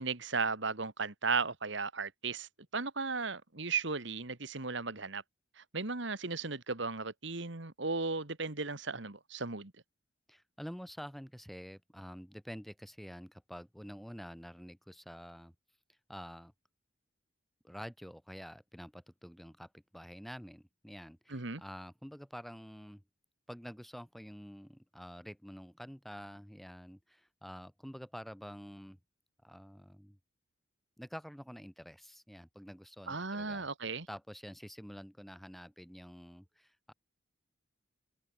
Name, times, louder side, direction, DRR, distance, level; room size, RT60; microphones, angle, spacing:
voice 1, 0.0-5.2 5.6-9.7 21.3-21.6 33.1-34.1, right 4 dB, 60° right, 1.8 m, -36 dB
voice 2, 10.3-15.5 16.1-16.5 17.6-23.0 23.5-29.0 29.4-30.2 31.0-33.7 34.1-36.9, equal, ahead, 3.5 m, -48 dB
open air
head